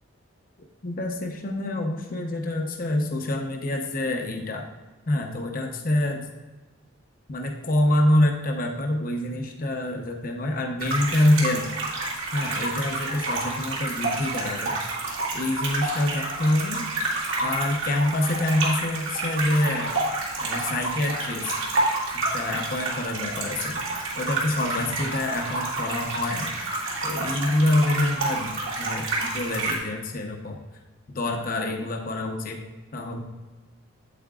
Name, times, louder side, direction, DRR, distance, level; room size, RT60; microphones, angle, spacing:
voice 1, 0.8-4.7 5.1-6.3 7.3-11.6 12.3-15.0 15.3-16.8 17.4-19.9 20.4-21.5 22.1-26.6 27.0-30.6 31.1-32.6 32.9-33.2, left 1 dB, 45° left, 2 dB, 0.8 m, -26 dB
sound 1, 10.8-29.8, right 2 dB, 75° right, 2.2 m, -29 dB
8.4 x 8.4 x 2.4 m, 1.2 s
head